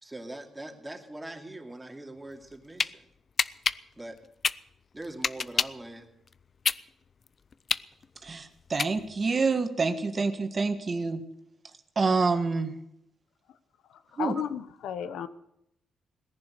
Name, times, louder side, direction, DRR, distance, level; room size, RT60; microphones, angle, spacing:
voice 1, 0.0-3.1 4.0-4.2 4.9-6.1, right 1 dB, 15° right, 3 dB, 2.5 m, -42 dB
sound 1, 2.4-2.9 3.4-5.9 6.3-9.3, left 5 dB, 45° left, 0.5 m, -28 dB
voice 2, 8.2-11.2 11.9-12.7 14.2-14.3, right 4 dB, 35° right, 7 dB, 1.6 m, -27 dB
voice 3, 14.1-15.3, left 9 dB, 85° left, 13 dB, 0.8 m, -33 dB
18.0 x 10.5 x 6.6 m, 0.79 s
cardioid pair, 95°, 0 cm